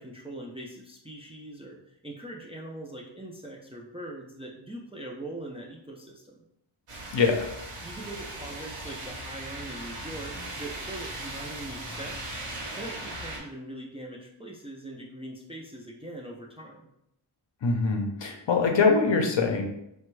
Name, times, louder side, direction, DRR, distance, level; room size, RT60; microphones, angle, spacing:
voice 1, 0.0-6.4 7.8-16.9, right 1 dB, 15° right, -1 dB, 0.3 m, -42 dB
sound 1, 6.9-13.4, right 1 dB, 80° right, 0.9 m, -38 dB
voice 2, 7.1-7.5 17.6-19.6, left 4 dB, 60° left, 3 dB, 0.6 m, -23 dB
3.3 x 2.2 x 3.1 m, 0.80 s
wide cardioid pair, 70°, 50 cm